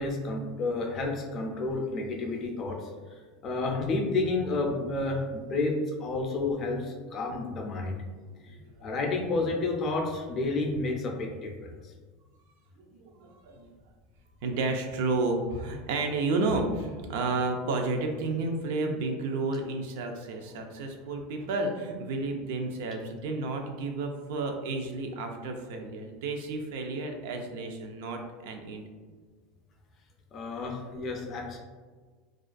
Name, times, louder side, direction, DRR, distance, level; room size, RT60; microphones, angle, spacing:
voice 1, 0.0-2.8 3.4-8.0 8.4-8.5 8.8-11.7 30.3-31.6, left 3 dB, 35° left, 1 dB, 0.4 m, -30 dB
voice 2, 8.3-8.9 12.8-13.7 14.4-28.8, right 3 dB, 75° right, 4 dB, 0.3 m, -31 dB
2.3 x 2.2 x 2.4 m, 1.4 s
supercardioid pair, 140°, 0 cm